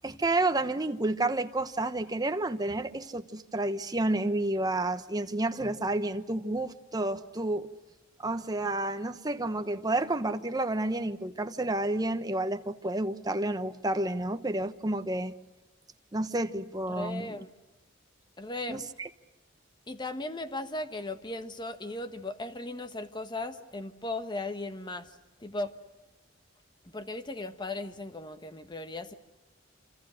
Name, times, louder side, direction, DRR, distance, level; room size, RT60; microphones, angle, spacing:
voice 1, 0.0-7.7 8.2-15.3 16.1-17.4 18.7-19.1, right 2 dB, 20° right, 8 dB, 1.1 m, -30 dB
voice 2, 16.9-17.5 18.4-18.8 19.9-25.1 25.4-25.7 26.9-29.1, left 2 dB, 25° left, 9 dB, 1.4 m, -37 dB
27.0 x 27.0 x 6.4 m, 1.1 s
head